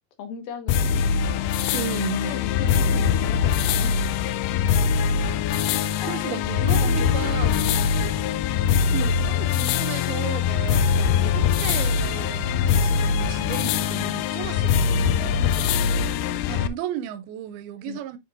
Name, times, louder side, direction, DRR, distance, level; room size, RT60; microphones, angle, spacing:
voice 1, 0.2-0.9 2.1-4.0 5.6-7.6 8.7-9.7 15.3-16.1 17.8-18.0, left 6 dB, 75° left, 3.0 m, -39 dB
sound 1, 0.7-16.7, left 7 dB, 90° left, 1.8 m, -22 dB
voice 2, 1.7-2.4 6.1-7.7 8.9-15.4 16.5-18.2, right 11 dB, 85° right, 2.6 m, -34 dB
7.3 x 6.0 x 2.4 m
omnidirectional pair, 4.4 m